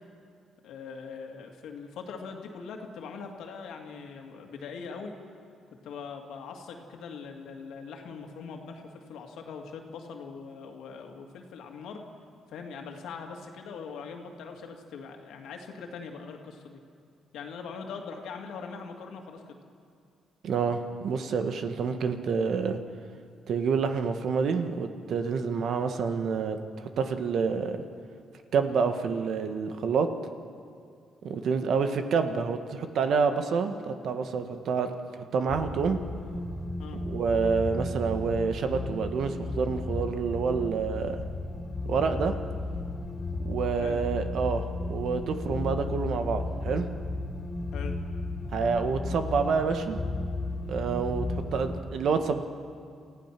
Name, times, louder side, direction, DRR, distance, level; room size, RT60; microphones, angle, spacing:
voice 1, 0.6-5.1 5.8-12.0 12.5-16.8 17.3-19.6 36.8-37.0 43.8-44.0 47.7-48.0, left 5 dB, 80° left, 3 dB, 2.3 m, -41 dB
voice 2, 20.4-22.8 23.5-26.6 27.0-27.8 28.5-30.1 31.2-36.0 37.1-41.2 41.8-42.3 43.4-44.6 44.9-46.9 48.5-50.0 50.7-52.4, right 5 dB, 65° right, 7 dB, 1.4 m, -28 dB
sound 1, 35.5-51.8, left 2 dB, 40° left, 2.6 m, -34 dB
28.5 x 15.5 x 6.0 m, 2.3 s
cardioid pair, 90°, 0 cm